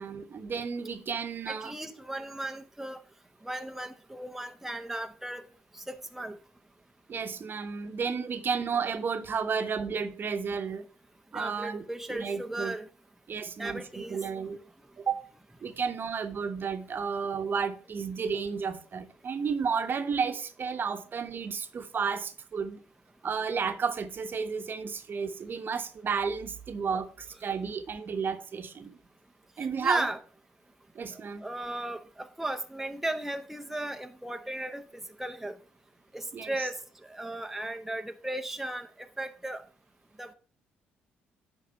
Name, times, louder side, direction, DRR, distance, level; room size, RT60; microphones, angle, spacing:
voice 1, 0.0-1.7 7.1-10.9 11.3-11.8 12.1-12.7 13.3-14.6 15.0-15.2 15.6-22.8 23.2-29.0 29.6-30.1 30.9-31.5 36.3-36.7, right 6 dB, 50° right, 1.0 m, -32 dB
voice 2, 1.5-3.0 3.4-5.4 5.7-6.4 11.3-12.9 13.6-14.2 29.8-30.2 31.1-35.6 36.1-39.6 40.2-40.3, right 1 dB, 5° right, 0.8 m, -36 dB
10.0 x 4.0 x 5.6 m
hypercardioid pair, 55°, 5 cm